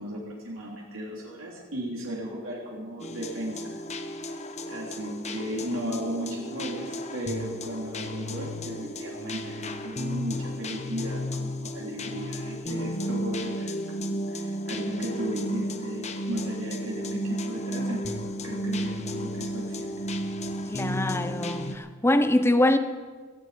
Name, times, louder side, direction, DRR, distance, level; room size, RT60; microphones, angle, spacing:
voice 1, 0.0-3.8 4.7-19.9, equal, 85° right, -3 dB, 3.6 m, -35 dB
sound 1, 3.0-21.8, equal, 35° left, 1.1 m, -33 dB
voice 2, 20.7-22.8, left 1 dB, 15° left, 10 dB, 0.9 m, -23 dB
18.0 x 14.5 x 5.2 m, 1.5 s
head